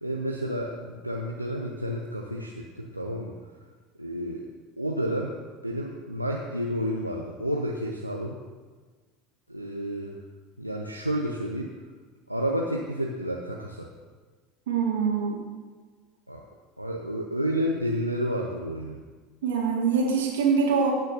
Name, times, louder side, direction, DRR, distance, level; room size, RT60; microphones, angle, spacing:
voice 1, 0.0-3.3 4.0-4.4 4.8-5.3 5.6-8.4 9.5-10.1 10.6-11.7 12.3-13.9 16.3-16.4 16.8-19.0, equal, 90° right, -1 dB, 0.7 m, -30 dB
voice 2, 14.7-15.5 19.4-20.9, right 5 dB, 65° right, -1 dB, 2.0 m, -24 dB
17.5 x 8.9 x 2.7 m, 1.4 s
figure-of-eight pair, 70°, 0 cm